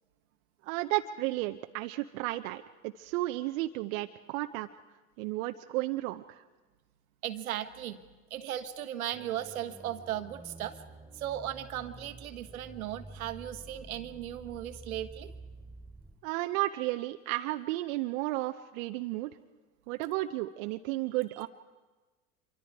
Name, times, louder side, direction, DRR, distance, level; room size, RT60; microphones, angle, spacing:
voice 1, 0.6-4.7 5.2-6.4 16.2-19.3 19.9-21.5, right 18 dB, 65° right, 7 dB, 0.7 m, -33 dB
voice 2, 7.2-8.0 8.3-10.8 11.1-15.3, right 12 dB, 85° right, 10 dB, 1.3 m, -37 dB
sound 1, 9.1-16.1, right 2 dB, 5° right, 3.0 m, -49 dB
26.0 x 24.0 x 4.8 m, 1.2 s
hypercardioid pair, 80°, 41 cm